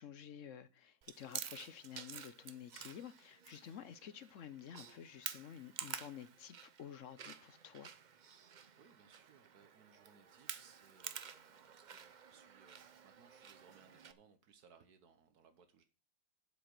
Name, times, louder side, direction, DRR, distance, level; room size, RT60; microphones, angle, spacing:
voice 1, 0.0-7.9, left 9 dB, 60° left, 1.0 m, -51 dB
Chewing mastication, 1.0-14.1, right 7 dB, 50° right, 0.5 m, -50 dB
voice 2, 8.4-15.8, right 6 dB, 85° right, 1.5 m, -66 dB
7.9 x 7.3 x 6.6 m
omnidirectional pair, 1.6 m